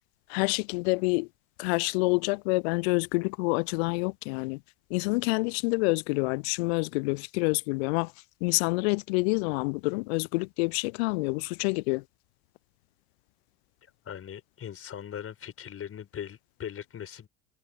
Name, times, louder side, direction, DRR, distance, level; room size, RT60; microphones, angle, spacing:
voice 1, 0.3-1.3 1.6-4.6 4.9-8.1 8.4-12.0, left 28 dB, 50° left, 0.6 m, -27 dB
voice 2, 13.8-17.3, left 9 dB, 30° left, 5.3 m, -40 dB
figure-of-eight pair, 70°, 43 cm